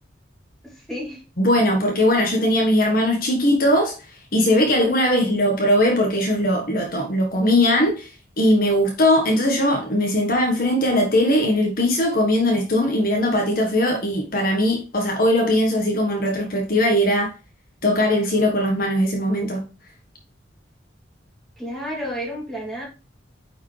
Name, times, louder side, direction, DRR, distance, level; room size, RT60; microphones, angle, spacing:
voice 1, 0.6-1.2 21.6-22.8, equal, ahead, 2.7 m, -31 dB
voice 2, 1.4-3.9 4.3-8.1 8.4-17.3 17.8-19.7, left 1 dB, 45° left, 1.4 m, -20 dB
9.2 x 4.9 x 3.3 m
head